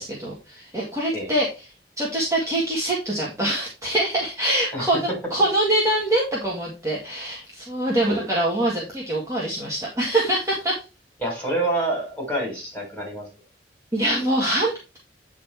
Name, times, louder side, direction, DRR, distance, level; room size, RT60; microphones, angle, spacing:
voice 1, 0.0-1.5 2.0-10.8 13.9-15.0, right 1 dB, 15° right, -4 dB, 1.9 m, -24 dB
voice 2, 11.2-13.3, right 1 dB, 10° left, -2 dB, 4.5 m, -27 dB
9.1 x 3.9 x 4.4 m, 0.30 s
head